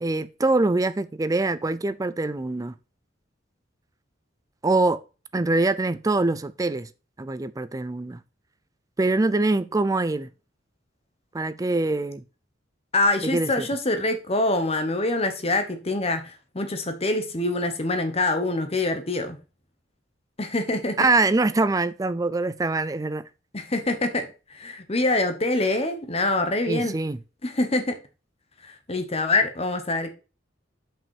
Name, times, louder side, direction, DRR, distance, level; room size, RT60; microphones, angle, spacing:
voice 1, 0.0-2.7 4.6-5.0 5.3-6.9 7.2-8.2 9.0-10.3 11.3-12.2 13.2-13.7 21.0-23.2 26.7-27.2, right 2 dB, 20° right, 0.4 m, -24 dB
voice 2, 12.9-19.4 20.4-21.0 23.5-27.0 27.4-28.0 28.6-30.1, left 2 dB, 35° left, 1.1 m, -25 dB
6.1 x 5.3 x 4.6 m
head